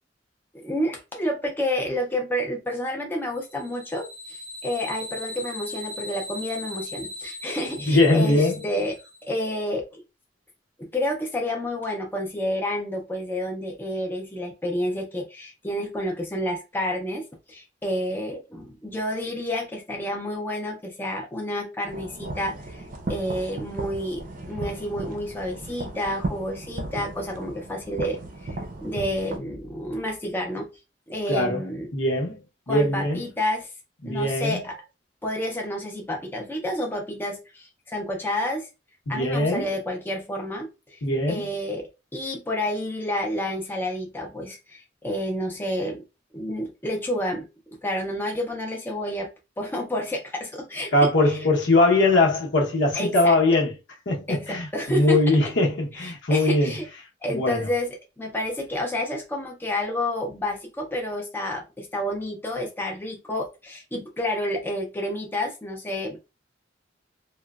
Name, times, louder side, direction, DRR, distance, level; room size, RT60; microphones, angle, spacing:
voice 1, 0.5-9.0 9.3-10.0 10.8-30.7 31.1-31.9 32.7-33.7 34.0-34.8 35.2-38.7 39.1-41.0 41.3-41.8 42.1-46.0 46.3-47.5 47.8-49.3 49.6-50.9 51.2-51.4 52.9-53.4 54.3-55.2 56.0-56.9 57.2-66.2, left 1 dB, 10° left, 0.5 m, -29 dB
sound 1, 3.4-9.4, left 2 dB, 5° right, 0.9 m, -38 dB
voice 2, 7.8-8.7 31.3-31.6 31.9-33.2 34.0-34.6 39.1-39.7 41.0-41.5 50.9-53.7 54.1-56.7 57.3-57.7, left 2 dB, 75° left, 0.8 m, -21 dB
sound 2, 21.9-29.4, right 2 dB, 50° right, 0.6 m, -35 dB
3.0 x 2.1 x 2.3 m
head